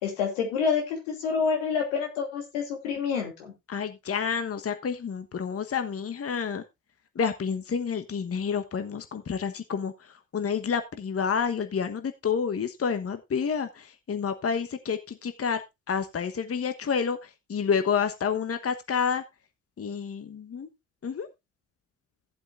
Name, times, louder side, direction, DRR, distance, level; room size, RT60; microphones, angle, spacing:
voice 1, 0.0-3.5, left 6 dB, 85° left, 2 dB, 2.7 m, -28 dB
voice 2, 3.7-6.6 7.1-9.9 10.3-15.6 15.9-19.2 19.8-20.7 21.0-21.3, left 6 dB, 40° left, 9 dB, 1.2 m, -29 dB
15.0 x 7.9 x 2.5 m, 0.22 s
hypercardioid pair, 50°, 37 cm